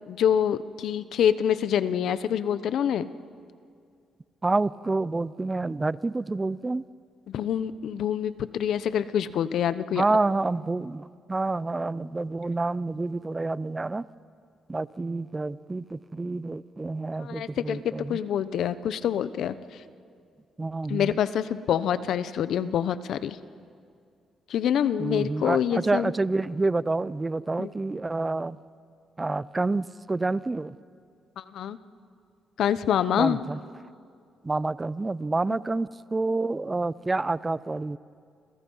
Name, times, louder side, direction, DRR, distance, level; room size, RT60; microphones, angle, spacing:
voice 1, 0.1-3.1 7.3-10.2 17.2-19.8 20.9-23.4 24.5-26.1 27.6-27.7 31.4-31.8 32.6-33.4 35.5-35.6, left 9 dB, 70° left, 14 dB, 0.9 m, -26 dB
voice 2, 4.4-6.8 10.0-14.0 14.7-18.2 20.6-21.2 25.0-28.6 29.2-30.7 33.2-33.6 34.4-38.0, right 3 dB, 20° right, 19 dB, 0.5 m, -28 dB
29.5 x 28.0 x 5.6 m, 2.3 s
cardioid pair, 90°, 0 cm